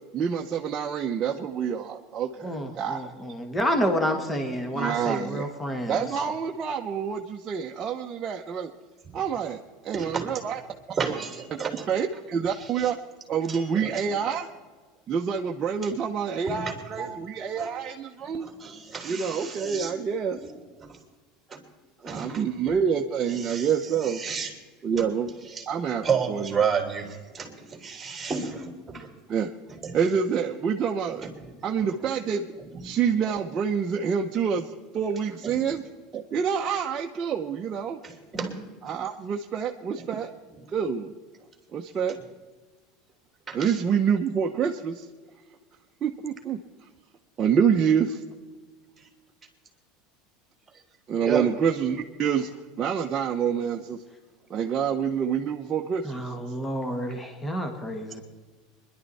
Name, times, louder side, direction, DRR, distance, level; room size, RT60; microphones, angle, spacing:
voice 1, 0.1-3.0 4.7-5.5 5.9-8.7 9.1-9.6 9.9-10.6 11.9-13.0 13.3-14.5 15.1-18.5 19.0-20.4 22.0-24.2 24.8-25.3 25.7-26.6 29.3-29.5 29.9-31.3 31.6-32.5 32.8-35.8 36.1-38.0 38.8-40.3 40.7-41.1 41.7-42.2 43.5-45.1 46.0-46.6 47.4-48.2 51.1-52.5 52.8-54.0 54.5-56.2, right 7 dB, 30° right, 1 dB, 0.8 m, -27 dB
voice 2, 2.4-6.0 56.0-58.2, equal, 15° left, 5 dB, 1.7 m, -29 dB
voice 3, 11.0-11.3 11.6-11.8 13.5-13.6 14.3-14.4 16.5-17.2 17.6-17.7 18.4-19.9 20.4-20.5 20.8-21.0 21.5-21.6 22.0-22.4 23.4-23.7 24.2-24.5 24.9-25.0 25.6-25.7 26.0-29.1 29.8-30.0 32.8-32.9 35.4-35.5 38.0-38.6 43.5-43.7 51.2-51.4, right 6 dB, 15° right, 2 dB, 3.2 m, -31 dB
21.5 x 11.5 x 4.2 m, 1.4 s
supercardioid pair, 120°, 0 cm